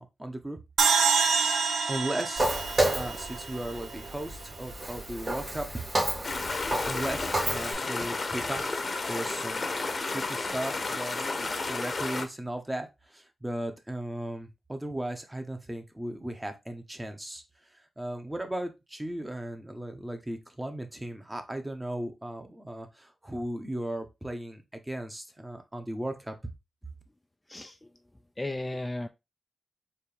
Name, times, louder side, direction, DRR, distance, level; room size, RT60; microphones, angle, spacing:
voice 1, 0.2-0.6 1.6-5.9 6.8-17.4 17.7-26.3, right 1 dB, 15° right, 6 dB, 0.9 m, -37 dB
sound 1, 0.8-4.1, right 5 dB, 85° right, 0.5 m, -27 dB
Walk footsteps, 2.4-7.7, right 1 dB, 40° right, 2.2 m, -31 dB
sound 2, 6.2-12.2, left 3 dB, 45° left, 0.8 m, -32 dB
voice 2, 28.4-29.1, left 2 dB, 20° left, 7 dB, 0.3 m, -34 dB
4.3 x 2.6 x 3.4 m, 0.23 s
cardioid pair, 75°, 0 cm